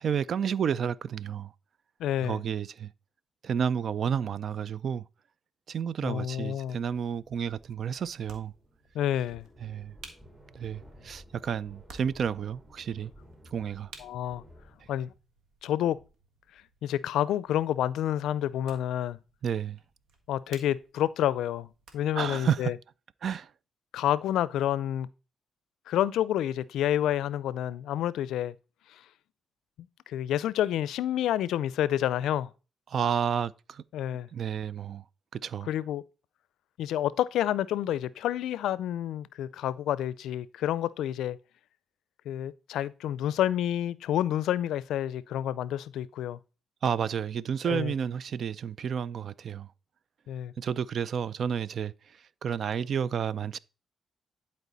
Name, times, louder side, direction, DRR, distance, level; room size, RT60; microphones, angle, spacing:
voice 1, 0.0-1.5 2.2-2.9 3.4-5.0 5.7-8.5 9.6-9.9 10.5-13.1 13.5-13.9 19.4-19.8 22.1-22.7 23.2-23.5 32.9-33.8 34.3-35.0 35.3-35.7 46.8-49.7 50.6-51.9 52.4-53.6, right 7 dB, 65° right, 0.4 m, -31 dB
voice 2, 2.0-2.4 6.0-6.8 8.9-9.4 14.0-14.4 14.9-15.1 15.6-16.0 16.8-19.2 20.3-21.7 21.9-22.7 23.9-25.1 25.9-28.5 30.1-32.5 33.9-34.3 35.7-36.0 36.8-41.4 42.3-46.4 47.7-47.9 50.3-50.5, left 11 dB, 85° left, 0.4 m, -29 dB
sound 1, 6.0-22.4, right 4 dB, 85° right, 1.5 m, -57 dB
sound 2, 6.8-15.2, equal, 25° right, 4.1 m, -55 dB
11.0 x 4.5 x 4.0 m
supercardioid pair, 60°, 0 cm